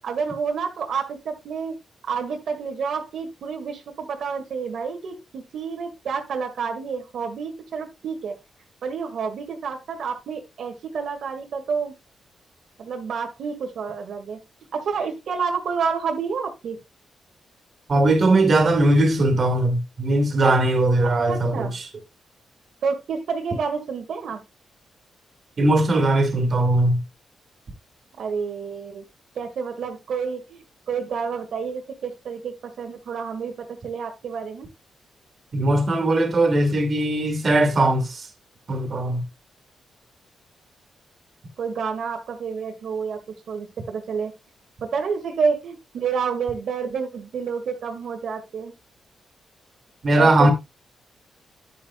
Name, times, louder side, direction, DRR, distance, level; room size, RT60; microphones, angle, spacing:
voice 1, 0.0-1.8 2.0-8.4 8.8-11.9 12.8-14.4 14.7-16.8 21.0-21.8 22.8-24.4 28.2-29.0 29.4-34.7 41.6-43.2 43.5-44.3 44.8-48.7 50.2-50.5, right 5 dB, 65° right, 1.9 m, -29 dB
voice 2, 17.9-21.8 25.6-27.0 35.5-38.3 38.7-39.2 50.0-50.5, right 2 dB, 40° right, 2.4 m, -19 dB
10.5 x 9.8 x 2.3 m
wide cardioid pair, 150°, 0 cm